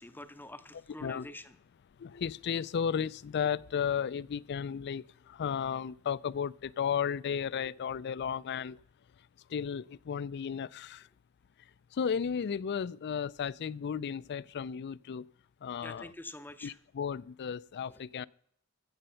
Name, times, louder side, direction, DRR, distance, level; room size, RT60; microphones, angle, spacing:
voice 1, 0.0-1.5 15.8-16.7 18.0-18.1, left 2 dB, 10° left, 0.6 m, -46 dB
voice 2, 1.0-1.3 2.0-8.8 9.5-11.1 11.9-15.3 15.6-16.1 16.6-18.3, left 7 dB, 50° left, 0.4 m, -34 dB
14.5 x 7.7 x 5.6 m
head